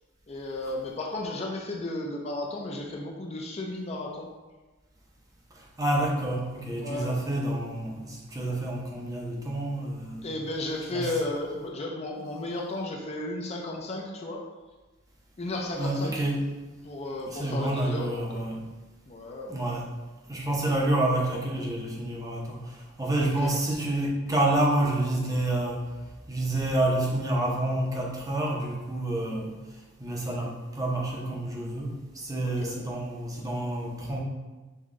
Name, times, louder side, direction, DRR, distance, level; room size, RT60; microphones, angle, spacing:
voice 1, 0.3-4.3 6.8-7.1 10.2-14.5 15.4-16.1 16.8-18.5 19.1-19.7 23.2-23.5 32.4-32.8, left 2 dB, 30° left, 0 dB, 0.5 m, -34 dB
voice 2, 5.8-10.3 10.9-11.1 15.8-16.4 17.3-18.6 19.5-19.9 20.3-22.7 23.0-25.8 26.3-29.5 30.0-34.2, right 1 dB, 15° right, -2 dB, 0.6 m, -28 dB
5.5 x 2.2 x 3.6 m, 1.2 s
head